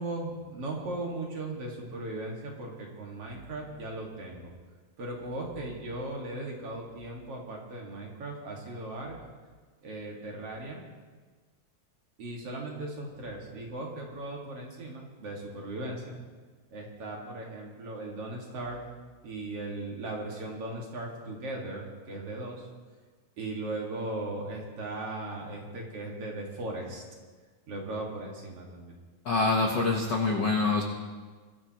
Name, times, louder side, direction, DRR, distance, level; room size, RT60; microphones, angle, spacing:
voice 1, 0.0-4.5 5.0-9.2 9.8-10.8 12.2-16.2 16.7-18.8 19.2-22.6 23.4-27.0 27.7-29.0, right 2 dB, 50° right, -1 dB, 2.7 m, -37 dB
voice 2, 29.2-30.8, left 3 dB, 65° left, 1 dB, 1.1 m, -25 dB
22.0 x 13.0 x 3.0 m, 1.4 s
omnidirectional pair, 3.7 m